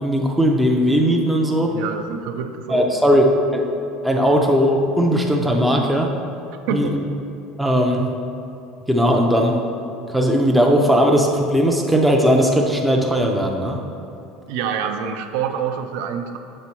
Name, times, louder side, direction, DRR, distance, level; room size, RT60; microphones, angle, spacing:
voice 1, 0.0-1.7 2.7-3.3 3.5-3.6 4.0-6.1 6.7-7.0 7.6-8.0 8.9-9.6 10.1-13.8, equal, 5° right, 0 dB, 0.4 m, -18 dB
voice 2, 1.7-3.1 6.7-6.9 14.5-16.4, right 7 dB, 65° right, 6 dB, 0.4 m, -26 dB
7.2 x 3.5 x 4.4 m, 2.8 s
cardioid pair, 180°, 0 cm